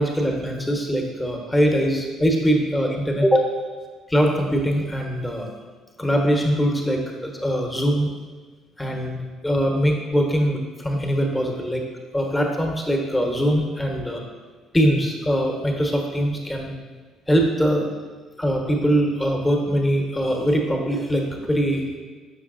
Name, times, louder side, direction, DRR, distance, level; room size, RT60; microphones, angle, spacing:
voice 1, 0.0-3.5 4.1-5.5 6.0-8.1 8.8-9.2 9.4-11.8 12.1-14.2 14.7-16.7 17.3-17.9 18.4-21.8, equal, 15° left, 2 dB, 1.1 m, -22 dB
6.6 x 6.0 x 2.6 m, 1.4 s
figure-of-eight pair, 50°, 0 cm